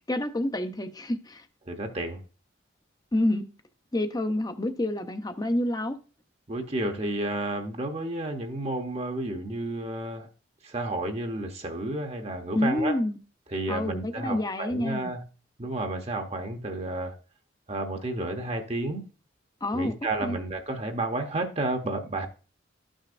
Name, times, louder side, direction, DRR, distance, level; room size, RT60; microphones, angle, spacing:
voice 1, 0.1-1.4 3.1-3.4 3.9-6.0 12.5-13.2 13.7-15.1 19.6-19.9 20.2-20.4, left 1 dB, 20° left, 0.6 m, -28 dB
voice 2, 1.7-2.2 6.5-10.3 10.6-13.0 13.5-15.2 15.6-17.1 17.7-19.0 19.7-22.3, right 2 dB, 30° right, 0.8 m, -31 dB
12.5 x 6.3 x 2.5 m
head